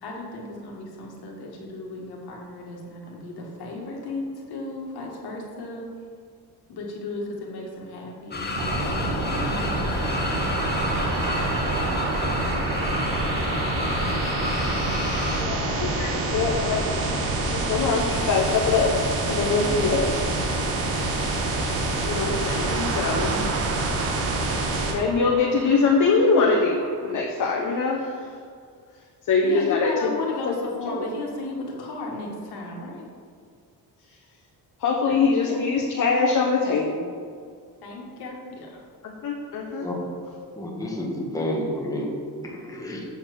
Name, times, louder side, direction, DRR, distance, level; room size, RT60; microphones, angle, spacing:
voice 1, 0.0-5.9 6.7-10.4 19.5-20.1 29.4-33.1 35.0-35.6 37.8-38.8, left 2 dB, 75° left, -2 dB, 1.9 m, -35 dB
sound 1, 8.3-15.4, left 2 dB, 25° left, 1.1 m, -30 dB
sound 2, 8.5-24.9, right 2 dB, 65° right, 1.6 m, -27 dB
sound 3, 9.3-27.2, right 6 dB, 40° right, 0.5 m, -38 dB
voice 2, 15.3-17.2 17.5-19.0 19.3-20.0 22.0-23.5 24.9-28.3 29.3-30.1 30.9-31.0 34.8-37.1 39.0-40.0 40.3-40.5, left 4 dB, 50° left, -1 dB, 1.1 m, -23 dB
voice 3, 40.5-42.1 42.4-43.1, left 1 dB, 10° left, -3 dB, 1.6 m, -30 dB
8.0 x 4.4 x 6.7 m, 2.1 s
cardioid pair, 115°, 39 cm